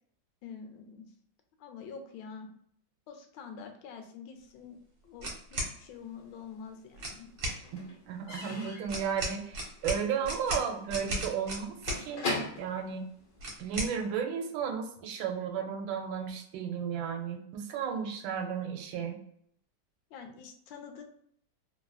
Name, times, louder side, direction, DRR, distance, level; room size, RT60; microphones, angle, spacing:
voice 1, 0.4-1.1 1.6-2.5 3.1-7.3 20.1-21.0, left 6 dB, 85° left, 5 dB, 1.3 m, -46 dB
sound 1, 5.2-5.7 6.9-7.6 8.9-12.0 13.4-13.9, right 1 dB, 60° right, 1.5 m, -35 dB
Slam / Squeak / Wood, 6.0-6.9 7.1-13.9, left 2 dB, 55° left, 1.1 m, -40 dB
voice 2, 8.1-12.3 12.6-13.1 13.6-19.2, right 7 dB, 90° right, 3 dB, 1.3 m, -34 dB
3.3 x 2.4 x 2.3 m, 0.67 s
omnidirectional pair, 2.0 m